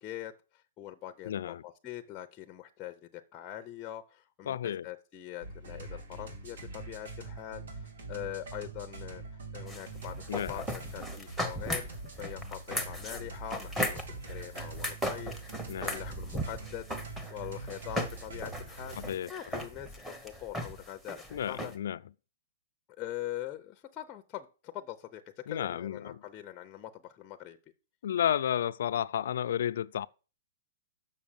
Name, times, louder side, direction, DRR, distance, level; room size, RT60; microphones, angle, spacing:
voice 1, 0.0-9.2 9.5-11.9 12.2-16.9 17.3-19.0 19.3-21.7 23.0-27.6, left 13 dB, 20° left, 0.6 m, -43 dB
voice 2, 1.2-1.6 4.5-4.9 10.3-10.6 15.7-16.0 19.0-19.6 21.3-22.0 25.5-26.2 28.0-30.1, left 10 dB, 65° left, 0.4 m, -32 dB
sound 1, 5.4-19.3, right 3 dB, 75° right, 2.7 m, -44 dB
sound 2, 9.7-21.7, equal, 5° right, 1.0 m, -37 dB
6.7 x 6.3 x 7.2 m
hypercardioid pair, 160°, 0 cm